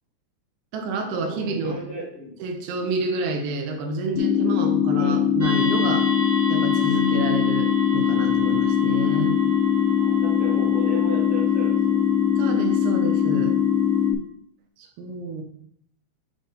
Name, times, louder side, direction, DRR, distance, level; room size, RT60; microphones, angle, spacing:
voice 1, 0.7-1.8 2.4-6.1 6.5-9.4 12.4-13.6 15.0-15.4, right 3 dB, 85° right, 4 dB, 2.8 m, -29 dB
voice 2, 1.3-2.3 4.9-5.2 10.0-12.0, equal, 55° left, -7 dB, 1.6 m, -35 dB
sound 1, 4.2-14.2, left 9 dB, 85° left, 2.5 m, -21 dB
sound 2, 5.4-14.1, right 1 dB, 40° right, 0.8 m, -34 dB
7.4 x 2.6 x 5.2 m, 0.69 s
omnidirectional pair, 4.5 m